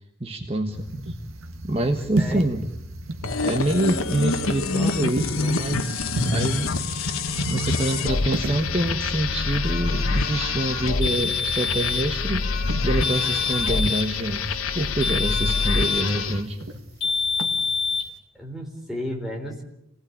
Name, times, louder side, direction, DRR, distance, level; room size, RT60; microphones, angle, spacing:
voice 1, 0.2-0.8 1.6-2.7 3.4-6.7 7.5-16.6, right 1 dB, 25° right, 4 dB, 1.4 m, -26 dB
River bloop under docks, 0.7-18.1, right 1 dB, 80° right, 1.6 m, -35 dB
sound 1, 3.2-16.4, left 4 dB, 85° left, 1.4 m, -26 dB
sound 2, 11.0-12.1 13.0-14.1 15.0-16.2 17.0-18.1, left 5 dB, 55° left, 3.9 m, -26 dB
voice 2, 18.3-19.6, equal, ahead, 0 dB, 4.0 m, -33 dB
28.0 x 18.5 x 8.8 m, 0.84 s
head